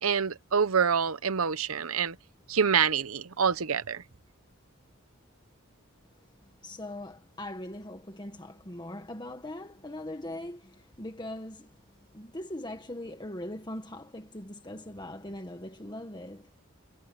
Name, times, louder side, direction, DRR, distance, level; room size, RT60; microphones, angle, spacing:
voice 1, 0.0-2.2 2.5-4.0, right 6 dB, 90° right, 0.9 m, -26 dB
voice 2, 6.4-11.8 12.1-16.5, left 1 dB, 20° left, 1.6 m, -41 dB
head